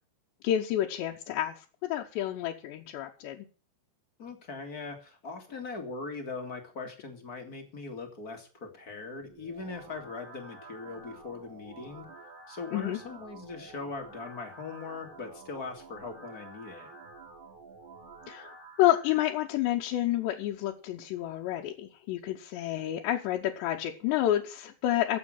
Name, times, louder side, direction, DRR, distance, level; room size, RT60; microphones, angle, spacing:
voice 1, 0.4-3.4 12.7-13.0 18.3-25.2, left 13 dB, 80° left, 0 dB, 3.2 m, -29 dB
voice 2, 4.2-12.1 12.5-17.0, left 4 dB, 40° left, 4 dB, 1.4 m, -40 dB
sound 1, 9.2-19.2, right 3 dB, 65° right, 4.9 m, -49 dB
15.0 x 7.5 x 6.5 m, 0.37 s
omnidirectional pair, 5.1 m